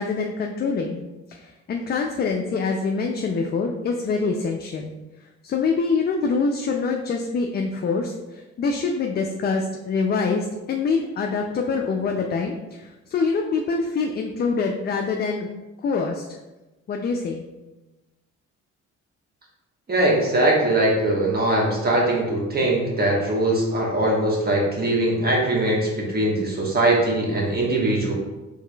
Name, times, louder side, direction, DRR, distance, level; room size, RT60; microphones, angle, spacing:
voice 1, 0.0-4.9 5.4-15.5 15.8-16.4 16.9-17.4, left 4 dB, 35° left, 2 dB, 0.4 m, -25 dB
voice 2, 19.9-28.1, right 1 dB, 30° right, -3 dB, 1.2 m, -21 dB
4.7 x 3.3 x 2.3 m, 1.1 s
cardioid pair, 90°, 30 cm